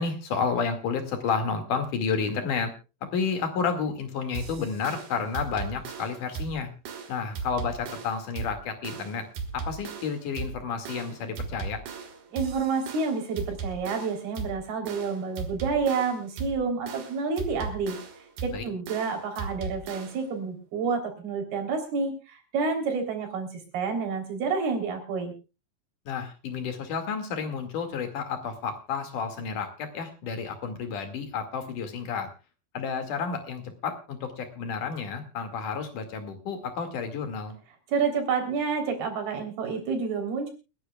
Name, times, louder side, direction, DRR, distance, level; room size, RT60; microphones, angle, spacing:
voice 1, 0.0-2.7 3.1-6.7 7.1-9.2 9.5-11.8 18.5-18.6 26.1-32.3 32.7-37.6, left 5 dB, 60° left, 7 dB, 3.6 m, -31 dB
sound 1, 4.3-20.3, right 5 dB, 65° right, 3.5 m, -38 dB
voice 2, 12.3-18.0 18.4-23.5 23.7-25.3 37.9-40.5, right 5 dB, 90° right, 5 dB, 5.4 m, -29 dB
29.0 x 10.5 x 2.3 m, 0.31 s
omnidirectional pair, 4.3 m